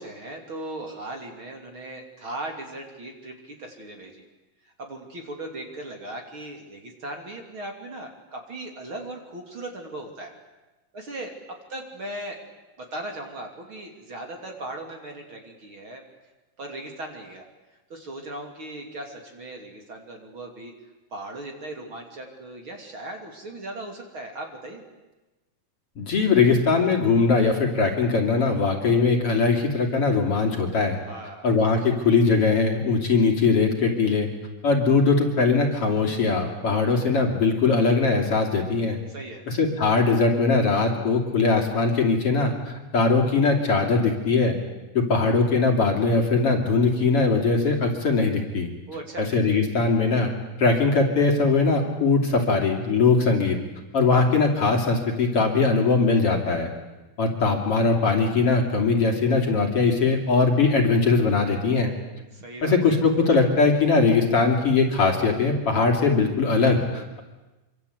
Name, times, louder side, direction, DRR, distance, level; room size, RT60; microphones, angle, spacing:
voice 1, 0.0-4.2 4.6-10.3 10.9-11.3 11.7-12.4 12.8-16.0 16.6-17.4 17.9-20.7 21.1-24.8 31.1-31.6 39.1-39.4 48.9-49.3 62.3-63.0, right 1 dB, 40° right, 2 dB, 3.5 m, -38 dB
voice 2, 26.0-31.0 31.4-34.3 34.6-39.0 39.5-42.5 42.9-44.6 44.9-48.7 49.2-50.3 50.6-53.6 53.9-56.7 57.2-61.9 62.6-67.2, left 4 dB, 45° left, 1 dB, 3.6 m, -21 dB
26.0 x 25.5 x 8.4 m, 1.1 s
omnidirectional pair, 3.8 m